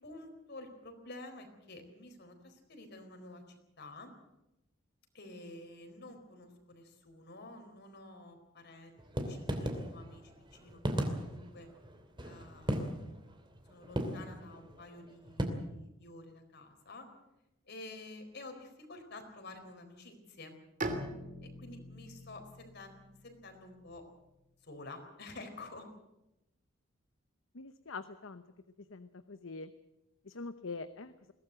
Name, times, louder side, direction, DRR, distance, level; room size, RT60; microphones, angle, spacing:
voice 1, 0.0-4.1 5.1-11.7 12.2-13.1 13.7-17.1 17.7-20.6 21.4-23.0 23.2-24.0 24.6-25.9, left 2 dB, 55° left, 5 dB, 4.2 m, -50 dB
sound 1, 9.0-15.5, equal, 25° right, 2.7 m, -36 dB
Bowed string instrument, 20.8-24.4, right 1 dB, 40° right, 2.8 m, -43 dB
voice 2, 27.5-28.4 28.9-29.7 30.3-31.1, left 3 dB, 75° left, 11 dB, 0.9 m, -44 dB
22.0 x 17.0 x 7.9 m, 0.93 s
head